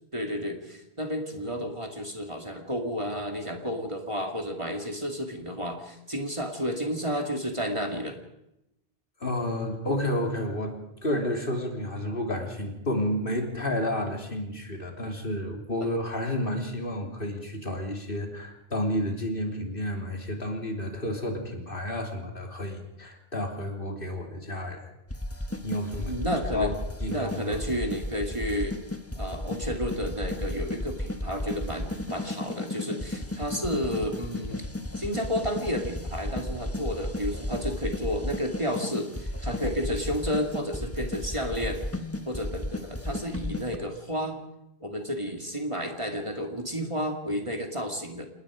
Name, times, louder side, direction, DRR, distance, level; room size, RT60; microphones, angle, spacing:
voice 1, 0.1-8.2 26.0-26.7 27.1-28.7 29.2-34.6 35.0-41.8 42.3-44.4 44.8-48.3, equal, 25° right, 3 dB, 2.4 m, -31 dB
voice 2, 9.2-24.8 25.6-26.2 26.5-27.5, left 1 dB, 50° left, 2 dB, 3.5 m, -31 dB
sound 1, 25.1-43.8, left 1 dB, 10° left, 1.3 m, -34 dB
27.0 x 20.0 x 5.0 m, 0.85 s
omnidirectional pair, 1.2 m